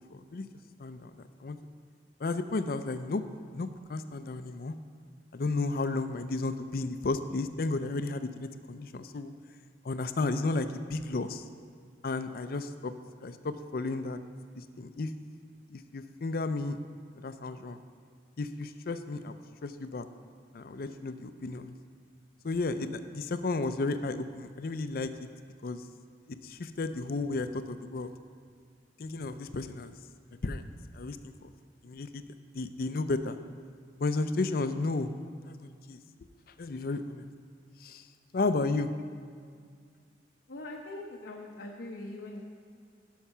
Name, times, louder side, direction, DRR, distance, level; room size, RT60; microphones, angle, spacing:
voice 1, 0.1-0.4 0.8-1.6 2.2-3.2 3.5-4.7 5.3-9.3 9.8-11.5 12.0-12.9 13.2-14.2 14.6-15.1 15.7-16.8 17.2-17.8 18.4-20.1 20.5-21.8 22.4-25.3 25.6-25.8 26.3-28.1 29.0-29.9 30.4-30.6 30.9-31.5 31.8-32.2 32.5-33.4 34.0-35.1 35.4-36.0 36.6-37.3 37.8-38.1 38.3-38.9, left 3 dB, 55° left, 10 dB, 0.5 m, -33 dB
voice 2, 40.5-42.4, left 2 dB, 80° left, -1 dB, 0.8 m, -42 dB
12.0 x 5.7 x 5.6 m, 2.1 s
head